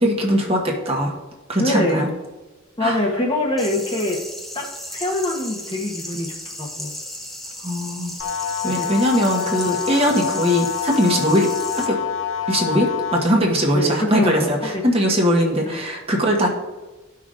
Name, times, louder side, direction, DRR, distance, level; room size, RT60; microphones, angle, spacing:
voice 1, 0.0-1.1 1.5-2.1 2.8-3.0 7.6-8.1 8.6-11.5 11.7-12.0 12.5-16.5, equal, 30° right, 0 dB, 1.2 m, -20 dB
voice 2, 1.6-2.0 2.8-4.2 4.5-6.9 8.8-8.9 9.7-9.8 13.7-14.7, left 1 dB, 25° left, 0 dB, 1.0 m, -24 dB
sound 1, 3.6-11.9, left 1 dB, ahead, 0.7 m, -35 dB
sound 2, 8.2-13.2, left 9 dB, 85° left, 0.8 m, -26 dB
13.5 x 5.8 x 2.5 m, 1.1 s
head